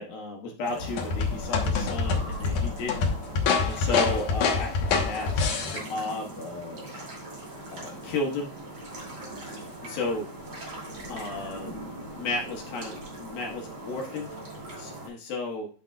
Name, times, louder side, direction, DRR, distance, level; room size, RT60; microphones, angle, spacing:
voice 1, 0.0-3.1 3.7-6.9 7.7-8.5 9.5-10.3 11.1-11.8 12.2-14.3 14.8-15.7, left 2 dB, 65° left, 0 dB, 2.8 m, -33 dB
sound 1, 0.6-15.1, right 1 dB, 35° right, 2.6 m, -40 dB
sound 2, 0.8-5.8, left 5 dB, 85° left, 1.7 m, -26 dB
10.0 x 5.8 x 2.3 m, 0.40 s
omnidirectional pair, 5.3 m